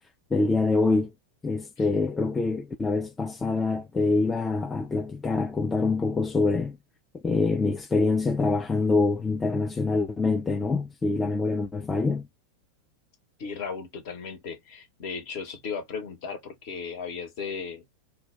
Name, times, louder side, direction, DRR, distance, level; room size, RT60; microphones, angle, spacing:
voice 1, 0.3-1.1 1.4-6.8 7.2-12.3, left 3 dB, 15° left, 0.3 m, -25 dB
voice 2, 13.4-17.8, left 5 dB, 45° left, 0.9 m, -36 dB
2.2 x 2.2 x 3.5 m
figure-of-eight pair, 90°, 0 cm